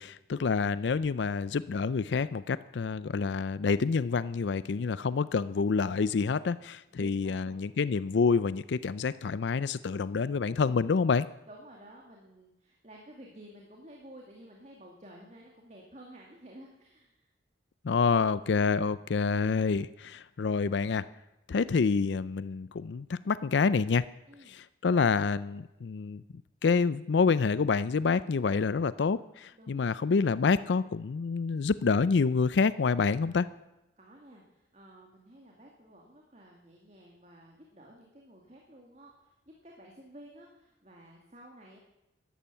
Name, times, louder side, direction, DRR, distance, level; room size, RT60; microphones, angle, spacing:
voice 1, 0.0-11.3 17.8-21.1 21.5-24.0 24.5-26.2 26.6-33.5, left 5 dB, 80° left, 16 dB, 0.4 m, -27 dB
voice 2, 6.9-7.7 11.5-17.3 24.3-24.6 29.5-29.9 34.0-41.8, right 1 dB, 40° right, -1 dB, 2.2 m, -52 dB
13.0 x 11.5 x 8.3 m, 0.94 s
head